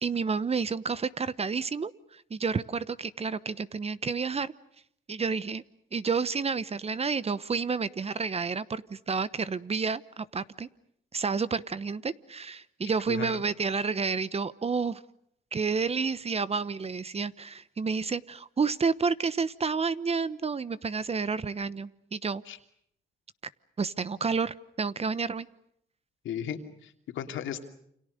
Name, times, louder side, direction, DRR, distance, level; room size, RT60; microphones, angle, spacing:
voice 1, 0.0-4.5 5.1-5.6 5.9-10.7 11.1-15.0 15.5-22.4 23.8-25.5, right 5 dB, 30° right, 16 dB, 1.0 m, -30 dB
voice 2, 13.1-13.4 22.5-22.6 26.2-27.6, left 9 dB, 75° left, 6 dB, 3.0 m, -36 dB
29.0 x 26.5 x 6.6 m, 0.71 s
cardioid pair, 90°, 20 cm